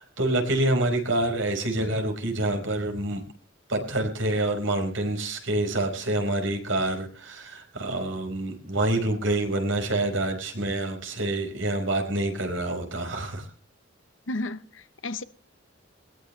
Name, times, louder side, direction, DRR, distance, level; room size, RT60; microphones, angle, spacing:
voice 1, 0.0-3.2 3.7-13.5, right 1 dB, 75° right, 5.2 m, -27 dB
voice 2, 14.3-15.2, left 2 dB, 80° left, 1.0 m, -33 dB
21.0 x 20.0 x 3.3 m
head